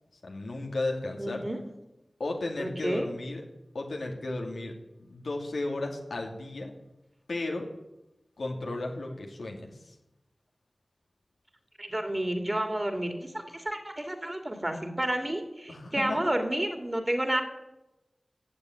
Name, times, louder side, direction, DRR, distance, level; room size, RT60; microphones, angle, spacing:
voice 1, 0.2-1.4 2.2-3.4 3.7-4.7 5.0-6.7 7.3-7.7 8.4-9.9 15.7-16.2, left 2 dB, 90° left, 1 dB, 2.8 m, -34 dB
voice 2, 1.2-1.6 2.6-3.1 11.8-17.4, right 1 dB, 30° right, 6 dB, 2.8 m, -30 dB
14.5 x 7.4 x 9.3 m, 0.94 s
cardioid pair, 40°, 0 cm